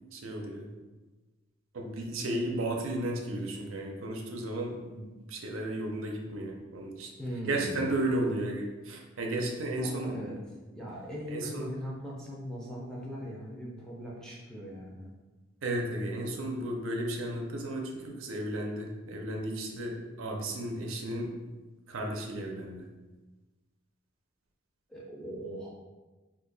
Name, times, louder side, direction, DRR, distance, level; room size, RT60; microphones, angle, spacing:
voice 1, 0.1-0.7 1.7-7.1 7.5-10.4 11.3-11.7 15.6-21.3 21.9-22.9, right 1 dB, 75° right, 1 dB, 0.5 m, -34 dB
voice 2, 7.2-8.1 9.7-10.4 10.7-15.1 24.9-25.7, equal, 5° left, -5 dB, 0.5 m, -40 dB
2.7 x 2.5 x 3.8 m, 1.2 s
head